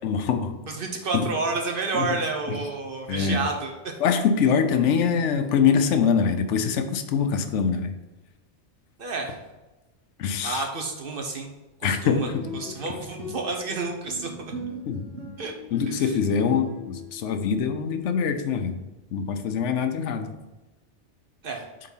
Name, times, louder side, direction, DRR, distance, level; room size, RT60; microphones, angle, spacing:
voice 1, 0.0-0.5 1.1-1.3 1.9-2.2 2.5-2.6 3.1-3.4 4.0-7.9 10.2-10.7 11.8-12.4 14.9-15.0 15.7-18.8 19.1-20.3, left 6 dB, 85° left, 7 dB, 1.0 m, -24 dB
voice 2, 0.8-3.9 9.0-9.4 10.4-11.5 11.8-14.5 15.4-15.5 16.0-16.1 21.4-21.7, right 3 dB, 55° right, 2 dB, 1.0 m, -30 dB
sound 1, 12.3-17.6, left 1 dB, 75° right, 1.7 m, -39 dB
4.7 x 3.8 x 5.5 m, 1.1 s
omnidirectional pair, 1.2 m